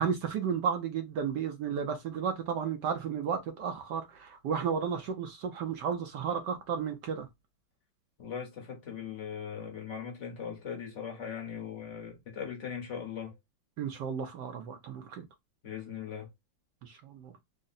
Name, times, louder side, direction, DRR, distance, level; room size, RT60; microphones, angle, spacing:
voice 1, 0.0-7.3 13.8-15.2 16.8-17.3, right 7 dB, 70° right, 1.1 m, -33 dB
voice 2, 8.2-13.3 15.6-16.3, left 7 dB, 50° left, 0.9 m, -39 dB
3.8 x 2.1 x 3.9 m
omnidirectional pair, 2.2 m